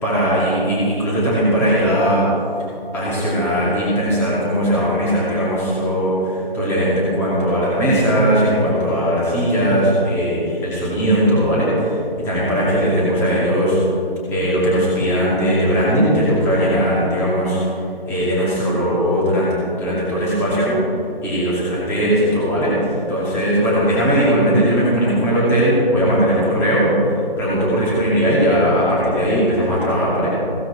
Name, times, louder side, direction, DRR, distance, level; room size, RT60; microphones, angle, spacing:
voice 1, 0.0-2.3 2.9-13.8 14.3-17.6 18.1-20.8 21.2-30.3, equal, 10° left, -7 dB, 2.6 m, -18 dB
16.5 x 15.0 x 4.4 m, 2.7 s
figure-of-eight pair, 160°, 29 cm